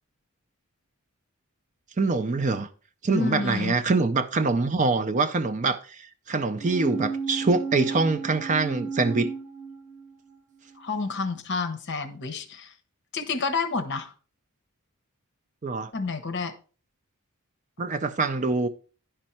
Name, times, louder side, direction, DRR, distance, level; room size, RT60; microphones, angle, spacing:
voice 1, 2.0-2.7 3.0-9.3 15.6-15.9 17.8-18.7, right 3 dB, 35° right, 0.4 m, -24 dB
voice 2, 3.1-3.8 10.8-12.7 13.1-14.1 15.9-16.5, left 4 dB, 50° left, 0.9 m, -29 dB
sound 1, 6.6-10.4 10.7-10.8, right 5 dB, 5° right, 1.6 m, -33 dB
10.0 x 5.3 x 4.3 m
head